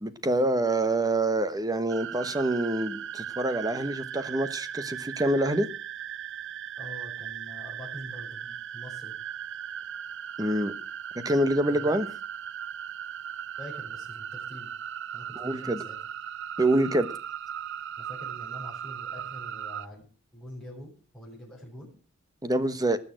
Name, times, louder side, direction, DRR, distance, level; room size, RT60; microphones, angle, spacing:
voice 1, 0.0-5.7 10.4-10.7 11.2-12.1 15.3-15.8 16.6-17.1 22.4-23.0, right 1 dB, 20° right, 1.2 m, -26 dB
sound 1, 1.9-19.9, right 9 dB, 60° right, 0.6 m, -38 dB
voice 2, 6.8-9.1 11.7-12.0 13.6-14.7 15.1-16.0 18.0-21.9, equal, 5° left, 7.1 m, -45 dB
19.5 x 7.0 x 7.7 m
head